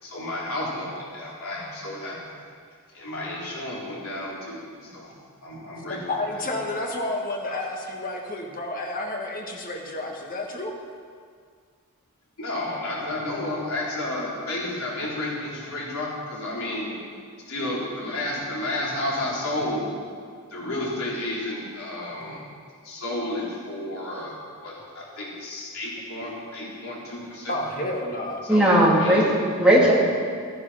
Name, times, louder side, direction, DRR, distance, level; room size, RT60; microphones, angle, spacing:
voice 1, 0.0-2.2 2.9-5.1 5.4-6.0 6.3-6.4 7.4-7.5 12.4-16.9 17.5-20.0 20.5-22.4 22.8-24.3 24.6-27.6 28.4-29.3, left 1 dB, 70° left, -6 dB, 3.9 m, -31 dB
voice 2, 5.9-10.7 27.5-28.4, left 2 dB, 40° left, 1 dB, 1.6 m, -30 dB
voice 3, 28.5-29.9, right 1 dB, 5° right, -5 dB, 2.5 m, -17 dB
14.0 x 10.0 x 5.7 m, 2.1 s
head